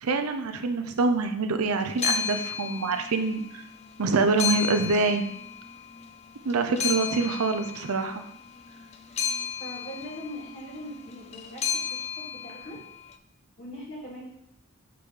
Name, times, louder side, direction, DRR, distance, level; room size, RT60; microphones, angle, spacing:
voice 1, 0.0-3.6 4.0-5.2 6.4-8.2, right 3 dB, 85° right, 7 dB, 0.6 m, -25 dB
sound 1, 1.8-3.5 3.8-6.1 6.5-13.0, left 7 dB, 30° left, 0.3 m, -33 dB
voice 2, 9.6-12.8 13.6-14.3, equal, 60° left, -4 dB, 2.2 m, -41 dB
5.8 x 5.2 x 3.3 m, 0.74 s
head